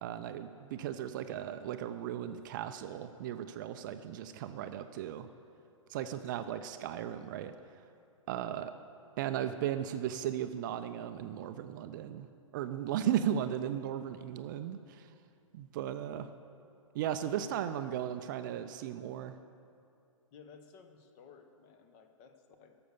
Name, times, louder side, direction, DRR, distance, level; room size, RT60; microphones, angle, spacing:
voice 1, 0.0-5.3 5.9-7.5 8.3-8.7 9.2-12.3 12.5-15.1 15.5-16.3 16.9-19.3, right 10 dB, 35° right, 10 dB, 0.4 m, -36 dB
voice 2, 5.9-6.8 17.2-17.6 20.3-22.8, left 6 dB, 35° left, 7 dB, 0.9 m, -56 dB
12.5 x 6.9 x 6.8 m, 2.4 s
figure-of-eight pair, 115°, 17 cm